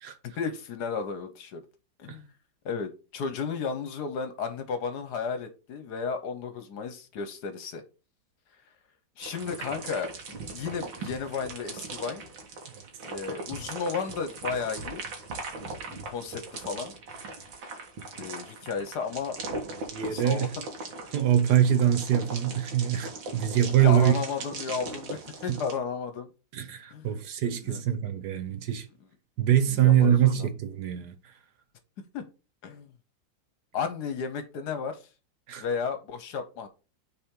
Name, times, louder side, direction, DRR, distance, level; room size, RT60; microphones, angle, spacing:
voice 1, 0.2-1.6 2.0-2.3 2.6-7.8 9.2-12.2 13.1-15.0 15.9-16.9 18.2-19.4 20.0-20.5 23.3-26.3 26.9-27.1 27.6-27.8 29.7-30.5 32.1-32.2 32.6-32.9 33.7-35.0 35.6-36.7, left 5 dB, 65° left, 1.4 m, -33 dB
sound 1, 9.2-25.8, right 3 dB, 85° right, 2.1 m, -39 dB
voice 2, 19.9-20.5 21.1-24.2 25.5-25.6 26.5-28.9 29.4-31.2 35.5-35.6, right 10 dB, 65° right, 1.3 m, -24 dB
8.5 x 4.3 x 3.7 m
omnidirectional pair, 2.0 m